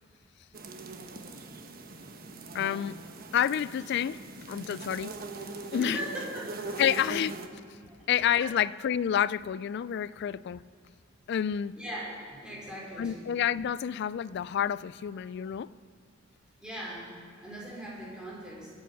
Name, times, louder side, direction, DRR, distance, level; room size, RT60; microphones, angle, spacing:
sound 1, 0.5-7.5, right 3 dB, 50° right, 1.1 m, -41 dB
voice 1, 2.5-3.0 3.3-4.2 4.5-5.1 5.7-6.0 6.8-7.3 8.1-10.6 11.3-11.8 13.0-15.7, left 9 dB, 60° left, 19 dB, 0.3 m, -29 dB
voice 2, 5.8-6.8 7.9-8.0 8.4-8.5 11.7-13.2 16.6-17.0 17.4-18.7, right 1 dB, 5° right, -6 dB, 4.8 m, -39 dB
24.5 x 8.5 x 6.0 m, 2.2 s
head